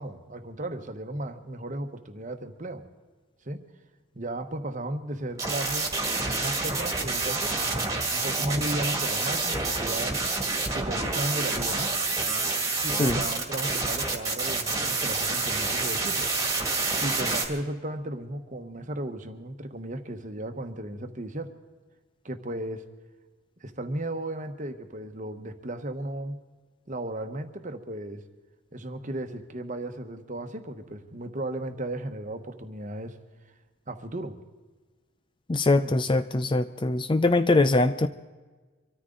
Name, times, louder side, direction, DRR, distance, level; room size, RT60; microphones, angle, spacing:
voice 1, 0.0-2.8 3.4-3.6 4.1-5.9 6.4-10.2 10.7-11.9 12.8-16.3 16.9-21.5 22.2-22.8 23.6-26.4 26.9-28.2 28.7-33.2 33.9-34.4 35.8-35.9, right 1 dB, 35° right, 7 dB, 1.1 m, -35 dB
sound 1, 5.3-17.4, right 3 dB, 15° right, 1.9 m, -28 dB
voice 2, 35.5-38.1, left 2 dB, 20° left, 10 dB, 0.4 m, -22 dB
25.0 x 13.5 x 3.9 m, 1.3 s
head